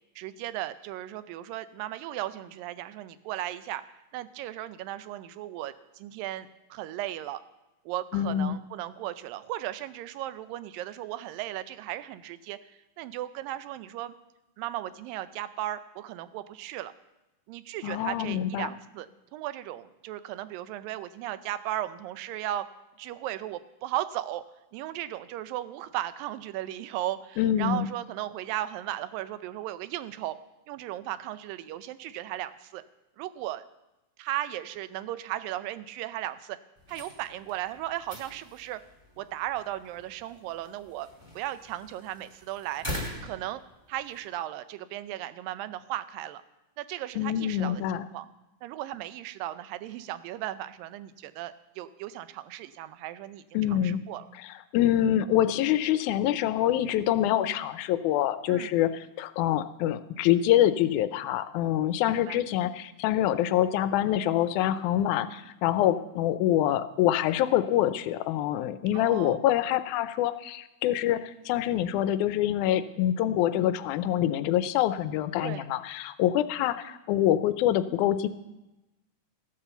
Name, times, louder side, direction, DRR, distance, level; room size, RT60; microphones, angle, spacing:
voice 1, 0.2-7.4 7.9-14.1 14.6-16.9 17.5-19.1 19.3-22.7 23.0-24.4 24.7-30.4 30.7-32.8 33.2-33.6 34.2-36.6 36.9-38.8 39.2-41.1 41.4-42.9 43.2-43.6 43.9-46.4 46.8-47.8 48.1-48.3 48.6-54.3 58.5-58.7 62.1-62.4 68.9-69.4 75.4-75.7, right 14 dB, 85° right, 13 dB, 2.4 m, -36 dB
voice 2, 8.1-8.6 17.8-18.7 27.4-27.9 47.2-48.1 53.5-54.0 54.4-78.3, left 12 dB, 80° left, 12 dB, 1.8 m, -25 dB
sound 1, 36.8-44.3, left 1 dB, 10° right, 1.2 m, -43 dB
14.5 x 8.6 x 6.9 m, 0.97 s
omnidirectional pair, 4.0 m